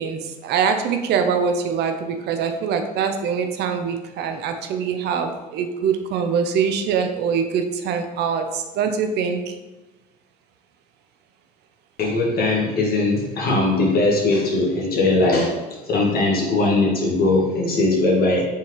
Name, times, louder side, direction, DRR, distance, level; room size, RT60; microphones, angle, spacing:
voice 1, 0.0-9.6, right 6 dB, 60° right, 6 dB, 0.5 m, -23 dB
voice 2, 12.0-18.5, left 2 dB, 50° left, -2 dB, 1.4 m, -20 dB
4.4 x 3.7 x 3.0 m, 1.1 s
hypercardioid pair, 65°, 20 cm